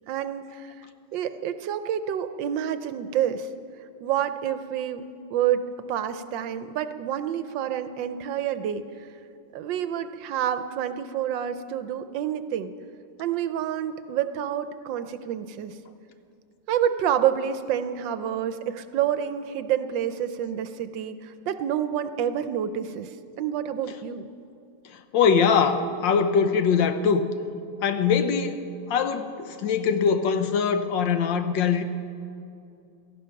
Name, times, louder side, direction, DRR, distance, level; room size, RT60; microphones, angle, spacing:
voice 1, 0.1-0.9 1.1-3.5 4.0-5.0 5.3-9.1 9.5-12.7 13.2-15.8 16.7-24.3, right 9 dB, 75° right, 11 dB, 1.3 m, -28 dB
voice 2, 25.1-27.3 27.8-28.6 28.9-31.8, left 6 dB, 70° left, 9 dB, 1.4 m, -22 dB
17.0 x 14.5 x 5.7 m, 2.5 s
omnidirectional pair, 2.2 m